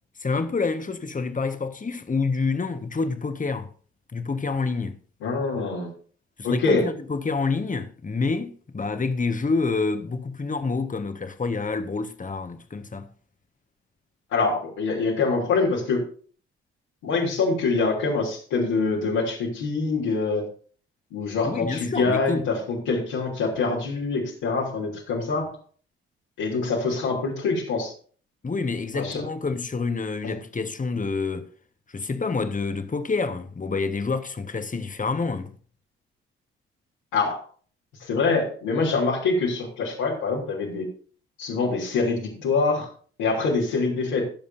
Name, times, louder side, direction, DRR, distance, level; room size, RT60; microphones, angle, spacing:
voice 1, 0.2-3.7 4.1-5.0 6.4-13.1 21.4-22.5 28.4-31.5 31.9-35.5, left 4 dB, 25° left, 1.4 m, -28 dB
voice 2, 5.2-5.9 6.4-6.9 14.3-16.1 17.0-20.5 21.1-25.4 26.4-27.9 28.9-29.2 30.2-30.4 37.1-37.4 38.0-40.9 41.4-42.9 43.2-44.3, left 4 dB, 75° left, 3.2 m, -25 dB
21.0 x 7.1 x 2.7 m
hypercardioid pair, 40°, 31 cm